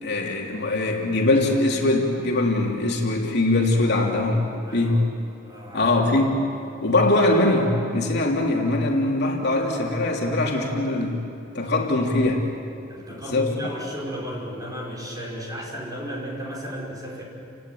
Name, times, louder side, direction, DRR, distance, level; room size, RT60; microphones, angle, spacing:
voice 1, 0.0-4.4 4.7-5.1 5.7-6.4 6.8-11.2 11.5-12.5 13.2-13.6, left 2 dB, 60° left, 0 dB, 3.1 m, -22 dB
voice 2, 4.6-5.1 5.5-5.9 12.9-17.2, equal, 20° right, -3 dB, 5.6 m, -34 dB
30.0 x 17.5 x 9.4 m, 2.7 s
head